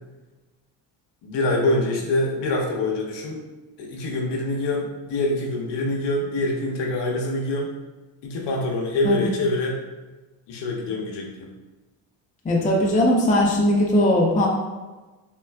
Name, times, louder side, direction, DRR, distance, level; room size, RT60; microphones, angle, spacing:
voice 1, 1.2-3.4 3.8-7.7 8.2-9.8 10.5-11.5, left 2 dB, 60° left, -1 dB, 0.8 m, -25 dB
voice 2, 12.4-14.5, left 1 dB, 15° left, -2 dB, 0.5 m, -19 dB
3.7 x 2.2 x 2.2 m, 1.2 s
supercardioid pair, 85°, 47 cm